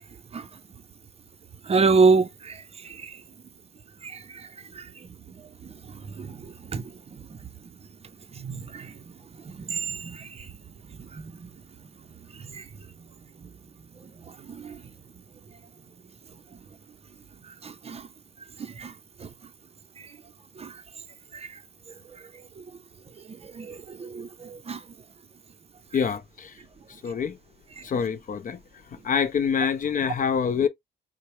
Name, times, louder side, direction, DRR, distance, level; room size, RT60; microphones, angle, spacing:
voice 1, 1.6-3.2 4.0-5.4 5.6-7.4 8.3-9.0 9.4-10.5 11.0-11.5 12.3-12.7 13.4-13.5 14.0-14.8 17.5-18.1 18.6-18.9 19.2-19.3 20.0-20.1 20.6-20.8 21.3-21.6 22.1-22.6 23.3-24.8, right 4 dB, 30° right, 0.5 m, -29 dB
voice 2, 25.9-26.6 27.0-27.4 27.8-28.6 28.9-30.7, left 7 dB, 45° left, 0.5 m, -26 dB
4.4 x 2.0 x 2.7 m
cardioid pair, 90°, 20 cm